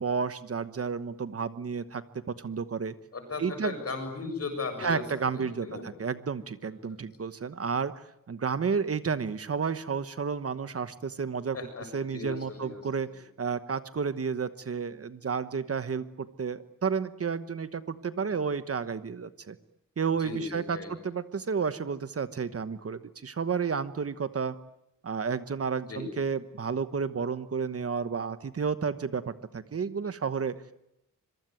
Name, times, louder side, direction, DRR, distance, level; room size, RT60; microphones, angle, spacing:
voice 1, 0.0-3.0 3.4-3.7 4.8-11.6 11.9-19.6 20.0-24.6 25.0-30.6, right 5 dB, 50° right, 12 dB, 1.2 m, -31 dB
voice 2, 3.1-5.0 5.3-5.9 6.9-7.0 11.5-12.8 20.2-20.9 25.9-26.0, left 4 dB, 50° left, 5 dB, 7.2 m, -37 dB
26.0 x 23.0 x 9.3 m, 0.81 s
wide cardioid pair, 165°, 31 cm